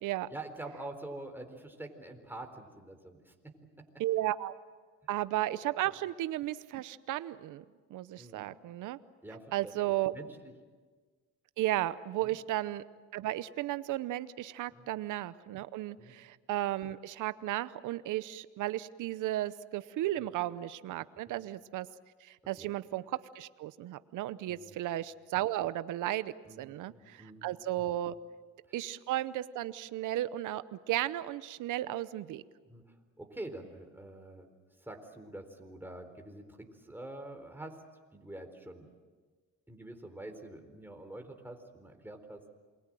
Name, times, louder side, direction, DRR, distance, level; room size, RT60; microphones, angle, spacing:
voice 1, 0.3-3.9 8.2-8.4 9.2-10.5 12.2-12.3 14.7-14.9 16.0-16.1 20.2-20.3 21.3-21.4 22.6-22.7 24.5-24.8 26.4-27.5 28.1-28.2 32.7-32.8 33.2-34.5 34.8-37.8 38.1-38.9 39.7-42.4, right 2 dB, 5° right, 4 dB, 4.1 m, -46 dB
voice 2, 4.0-4.5 5.1-7.6 7.9-9.0 9.5-10.1 11.6-12.8 13.1-21.9 22.2-28.2 28.7-32.4, right 14 dB, 85° right, 15 dB, 0.8 m, -34 dB
28.0 x 22.5 x 7.7 m, 1.5 s
cardioid pair, 90°, 30 cm